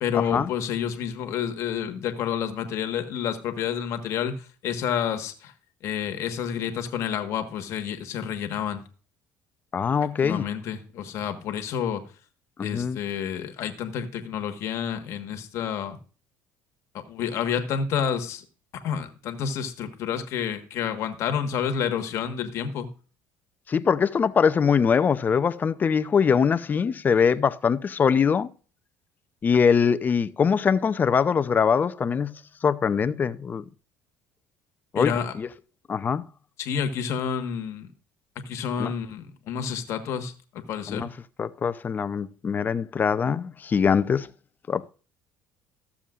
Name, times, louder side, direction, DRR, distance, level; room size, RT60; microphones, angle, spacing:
voice 1, 0.0-5.5 5.8-8.8 10.2-12.0 12.6-16.0 17.1-18.4 18.8-22.9 34.9-35.3 36.6-37.9 38.4-41.1, left 8 dB, 65° left, 1.4 m, -29 dB
voice 2, 9.7-10.5 12.6-13.0 23.7-28.5 29.4-33.6 34.9-35.5 35.9-36.2 38.8-38.9 40.9-41.1 41.4-44.3 44.7-44.8, left 6 dB, 35° left, 0.6 m, -23 dB
14.0 x 7.1 x 2.5 m
supercardioid pair, 85°, 5 cm